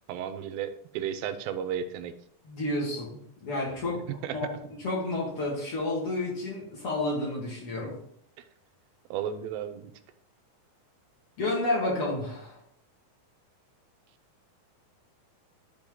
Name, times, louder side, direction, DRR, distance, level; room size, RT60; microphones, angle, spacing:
voice 1, 0.1-2.1 4.2-4.5 9.1-9.9, right 9 dB, 85° right, 10 dB, 2.5 m, -33 dB
voice 2, 2.4-4.1 4.3-8.0 11.4-12.6, left 2 dB, 45° left, -3 dB, 2.6 m, -31 dB
11.5 x 4.4 x 3.8 m, 0.69 s
omnidirectional pair, 4.1 m